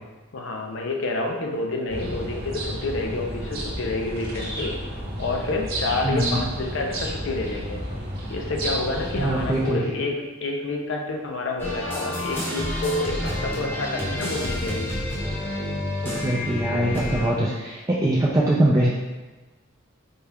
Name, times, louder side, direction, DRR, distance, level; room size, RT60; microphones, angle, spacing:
voice 1, 0.3-4.8 5.2-7.8 8.3-14.9, left 2 dB, 65° left, 1 dB, 0.6 m, -28 dB
sound 1, 1.9-9.7, right 1 dB, 50° right, 0.8 m, -31 dB
voice 2, 6.0-6.4 9.2-9.8 16.0-18.9, right 1 dB, 15° right, -6 dB, 0.3 m, -22 dB
sound 2, 11.6-17.3, left 1 dB, 10° left, 0.8 m, -29 dB
4.2 x 2.3 x 3.4 m, 1.2 s
head